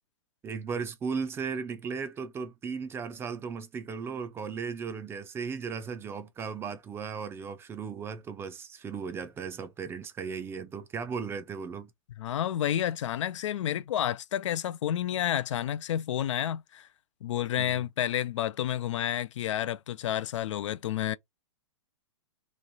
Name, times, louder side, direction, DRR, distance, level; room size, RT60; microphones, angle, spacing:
voice 1, 0.4-11.9 17.6-17.8, right 5 dB, 15° right, 0.4 m, -36 dB
voice 2, 12.2-16.9 17.2-21.2, left 11 dB, 65° left, 0.4 m, -30 dB
3.1 x 2.5 x 4.0 m
hypercardioid pair, 125°, 17 cm